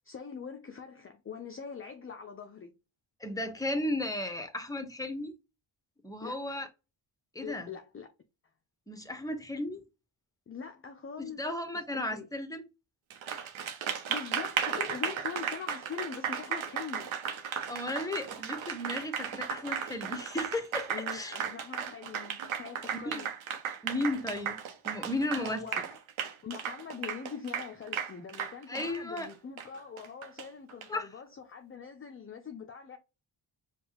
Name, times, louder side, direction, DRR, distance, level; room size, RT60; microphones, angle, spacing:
voice 1, 0.0-2.8 6.2-6.5 7.4-8.1 10.5-11.4 11.7-12.3 13.9-17.2 20.9-23.3 25.3-26.0 26.4-33.0, left 6 dB, 25° left, 0.5 m, -43 dB
voice 2, 3.2-5.3 6.0-6.7 7.3-7.7 8.9-9.8 11.2-12.6 17.7-21.3 23.0-23.3 23.8-24.6 24.8-25.6 28.7-29.3 30.9-31.1, left 1 dB, 5° left, 0.9 m, -34 dB
Applause, 13.1-30.9, right 8 dB, 70° right, 0.9 m, -35 dB
5.2 x 2.4 x 3.0 m
cardioid pair, 80°, 50 cm